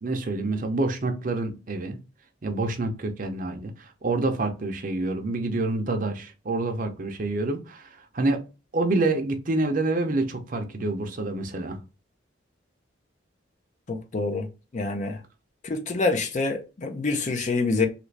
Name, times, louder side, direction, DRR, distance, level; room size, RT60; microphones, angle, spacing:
voice 1, 0.0-2.0 2.4-8.4 8.7-11.8, right 2 dB, 45° right, 0.6 m, -27 dB
voice 2, 13.9-14.5 14.7-15.2 15.6-17.9, left 3 dB, 40° left, 0.4 m, -26 dB
3.1 x 2.5 x 3.2 m
head